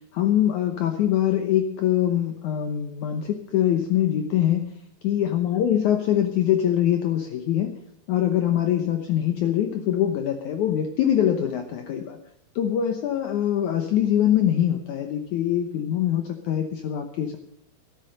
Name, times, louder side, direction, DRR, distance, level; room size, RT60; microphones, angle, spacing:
voice 1, 0.1-4.7 5.0-7.8 8.1-12.2 12.6-17.4, left 10 dB, 75° left, 5 dB, 1.8 m, -23 dB
13.0 x 12.5 x 6.5 m, 0.70 s
omnidirectional pair, 4.7 m